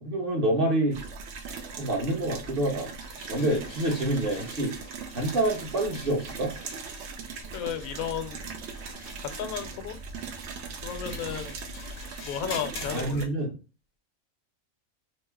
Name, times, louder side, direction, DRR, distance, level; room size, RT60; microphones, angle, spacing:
voice 1, 0.0-1.0 1.8-2.9 3.3-4.8 5.1-6.5 11.3-11.4 12.8-13.5, right 1 dB, 40° right, -1 dB, 1.1 m, -27 dB
sound 1, 0.9-13.3, right 5 dB, 65° right, 0.7 m, -40 dB
sound 2, 3.0-13.0, left 3 dB, 45° left, 0.6 m, -47 dB
voice 2, 7.5-8.4 9.2-10.0 10.8-11.6 12.2-13.3, left 8 dB, 70° left, 8 dB, 1.0 m, -33 dB
2.9 x 2.0 x 3.3 m, 0.33 s
omnidirectional pair, 1.6 m